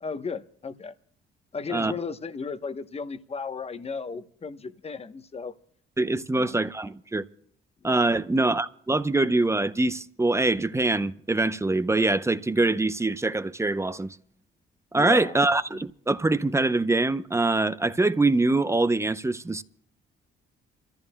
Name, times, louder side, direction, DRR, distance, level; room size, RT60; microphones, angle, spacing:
voice 1, 0.0-0.9 1.5-5.5 6.3-6.6 7.8-8.0 14.9-15.4 15.7-15.8, left 5 dB, 30° left, 1.0 m, -35 dB
voice 2, 6.0-7.2 7.8-14.2 14.9-19.6, right 2 dB, 15° right, 0.6 m, -24 dB
28.0 x 14.5 x 2.2 m
cardioid pair, 90°, 20 cm